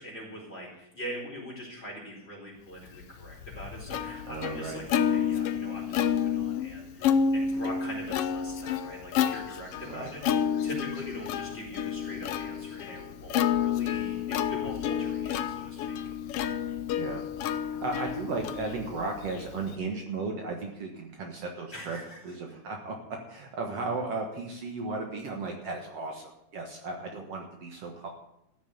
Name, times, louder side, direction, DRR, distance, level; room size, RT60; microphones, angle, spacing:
voice 1, 0.0-10.2 10.6-16.0 21.7-22.4, equal, 20° left, -3 dB, 4.6 m, -42 dB
Plucked string instrument, 3.0-19.7, left 8 dB, 75° left, 1.4 m, -30 dB
voice 2, 4.3-4.8 9.8-10.1 17.0-17.2 17.8-22.0 22.2-23.0 23.3-28.1, right 3 dB, 60° right, 1 dB, 2.3 m, -35 dB
14.5 x 7.2 x 8.4 m, 0.82 s
omnidirectional pair, 3.4 m